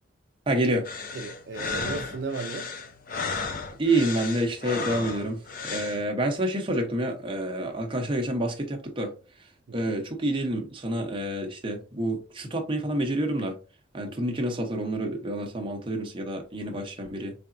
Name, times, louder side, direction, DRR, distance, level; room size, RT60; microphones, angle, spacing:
voice 1, 0.5-0.8 3.8-5.4 5.6-9.1 9.7-13.6 13.9-17.3, right 1 dB, 25° right, 0.8 m, -28 dB
sound 1, 0.9-6.0, left 4 dB, 45° left, 0.5 m, -34 dB
voice 2, 1.1-2.7 5.7-5.9 9.7-9.9, right 4 dB, 65° right, 0.4 m, -35 dB
3.9 x 3.3 x 2.5 m
head